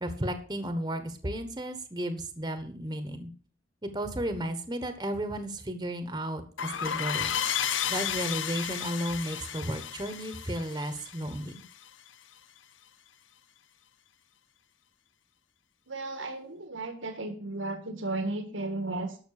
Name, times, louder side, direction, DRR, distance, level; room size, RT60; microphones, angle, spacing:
voice 1, 0.0-3.3 3.8-7.3 7.9-11.6, right 1 dB, 20° right, 10 dB, 1.3 m, -33 dB
sound 1, 6.6-11.9, left 9 dB, 80° left, 0.8 m, -33 dB
voice 2, 15.9-19.2, right 2 dB, 85° right, 7 dB, 1.7 m, -34 dB
12.0 x 6.5 x 6.6 m, 0.42 s
head